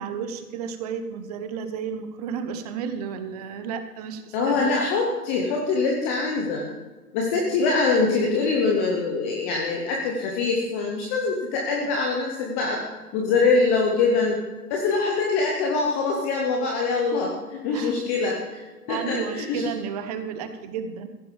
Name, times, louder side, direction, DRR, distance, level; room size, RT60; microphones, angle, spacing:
voice 1, 0.0-4.7 13.5-13.6 17.7-18.0 18.9-21.1, right 7 dB, 25° right, 9 dB, 1.1 m, -32 dB
voice 2, 4.3-6.7 7.1-12.8 13.1-14.4 14.7-18.6 18.9-19.7, left 4 dB, 10° left, 0 dB, 0.6 m, -24 dB
15.0 x 11.0 x 5.2 m, 1.3 s
hypercardioid pair, 140°, 47 cm